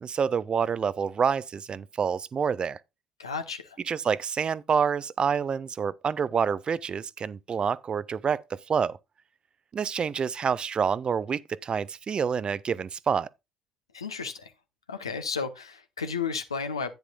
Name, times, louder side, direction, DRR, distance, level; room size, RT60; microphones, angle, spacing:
voice 1, 0.0-2.8 3.9-9.0 9.7-13.3, right 6 dB, 40° right, 0.5 m, -27 dB
voice 2, 3.2-3.8 13.9-14.5 14.9-16.9, left 5 dB, 85° left, 1.0 m, -33 dB
10.5 x 9.6 x 2.4 m
figure-of-eight pair, 50°, 3 cm